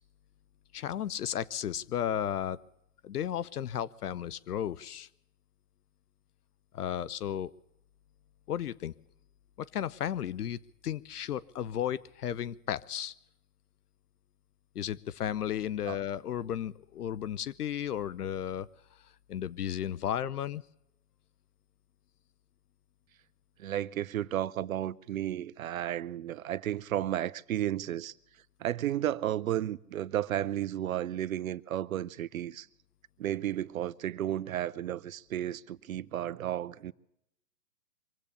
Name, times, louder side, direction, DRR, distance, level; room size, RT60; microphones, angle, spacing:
voice 1, 0.7-2.6 3.0-5.1 6.7-7.5 8.5-8.9 9.6-10.6 10.8-13.1 14.7-18.7 19.3-20.6, left 10 dB, 70° left, 0.8 m, -34 dB
voice 2, 23.6-28.1 28.6-32.7 33.2-36.9, right 12 dB, 60° right, 0.7 m, -33 dB
25.0 x 8.4 x 6.7 m
hypercardioid pair, 145°, 47 cm